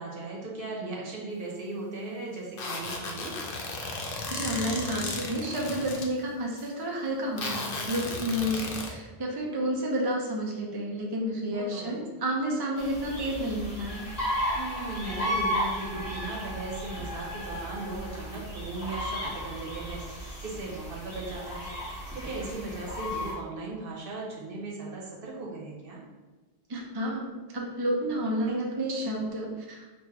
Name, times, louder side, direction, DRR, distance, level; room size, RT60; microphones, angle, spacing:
voice 1, 0.0-3.4 11.5-12.0 14.5-21.7 22.1-26.0, right 2 dB, 65° right, -3 dB, 1.1 m, -37 dB
sound 1, 2.6-6.1 6.5-6.7 7.4-8.9, left 3 dB, 65° left, 0.8 m, -35 dB
voice 2, 4.3-14.0 26.7-29.8, right 1 dB, 30° right, -2 dB, 0.5 m, -30 dB
sound 2, 12.8-23.3, equal, 35° left, 1.2 m, -34 dB
4.8 x 2.6 x 3.2 m, 1.2 s
omnidirectional pair, 1.0 m